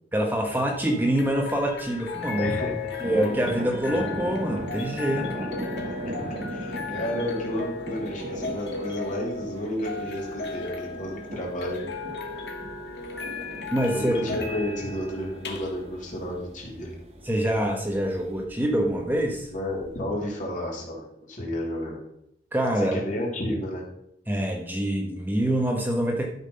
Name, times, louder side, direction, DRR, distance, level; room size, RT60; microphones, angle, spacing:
voice 1, 0.1-2.5 3.0-5.2 13.7-14.2 17.2-19.5 22.5-23.0 24.3-26.3, right 1 dB, 10° right, 1 dB, 1.2 m, -25 dB
sound 1, 0.8-20.0, left 4 dB, 70° left, 1.8 m, -36 dB
sound 2, 2.1-18.4, right 1 dB, 35° right, 1.1 m, -38 dB
voice 2, 2.4-2.9 5.4-5.5 6.0-6.1 6.5-11.8 13.9-16.9 19.5-22.0 22.8-23.8, equal, 45° left, -2 dB, 3.3 m, -31 dB
12.5 x 5.8 x 5.7 m, 0.77 s
head